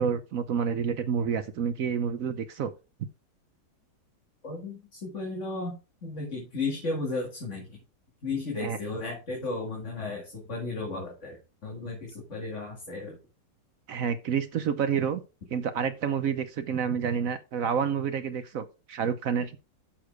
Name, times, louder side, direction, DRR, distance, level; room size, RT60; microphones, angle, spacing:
voice 1, 0.0-2.7 8.6-8.8 13.9-15.2 15.5-19.6, right 7 dB, 60° right, 0.9 m, -29 dB
voice 2, 4.4-7.8 8.2-13.2, left 3 dB, 40° left, 2.4 m, -34 dB
7.2 x 6.6 x 4.6 m
omnidirectional pair, 2.0 m